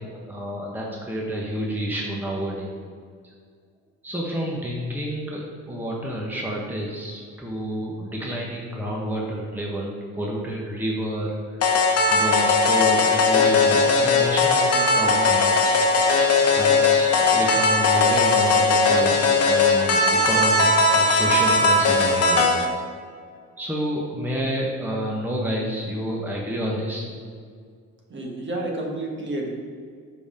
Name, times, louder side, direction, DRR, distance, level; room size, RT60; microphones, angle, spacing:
voice 1, 0.0-2.7 4.0-5.4 5.7-11.6 12.1-15.7 16.5-19.2 19.4-22.5 23.6-27.0, equal, 5° right, -2 dB, 1.1 m, -29 dB
sound 1, 11.6-22.6, left 3 dB, 50° left, 1.1 m, -19 dB
voice 2, 28.1-29.5, right 2 dB, 35° right, -1 dB, 1.5 m, -30 dB
5.5 x 5.1 x 5.0 m, 2.1 s
supercardioid pair, 75°, 32 cm